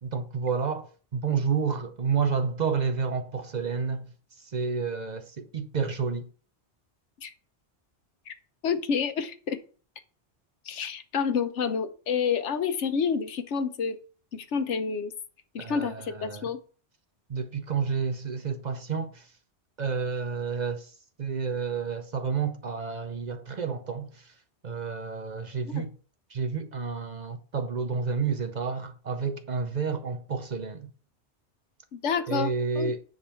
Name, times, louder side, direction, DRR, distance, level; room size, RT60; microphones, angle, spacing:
voice 1, 0.0-4.1 4.5-6.3 15.6-16.5 17.3-19.3 19.8-20.9 21.2-24.3 24.6-26.0 26.3-30.9 32.3-33.0, right 5 dB, 45° right, 0.7 m, -30 dB
voice 2, 8.6-9.6 10.7-14.0 14.3-15.1 15.5-16.6 25.6-25.8 31.9-32.5 32.8-32.9, left 6 dB, 85° left, 1.2 m, -29 dB
10.0 x 4.0 x 5.6 m
omnidirectional pair, 1.2 m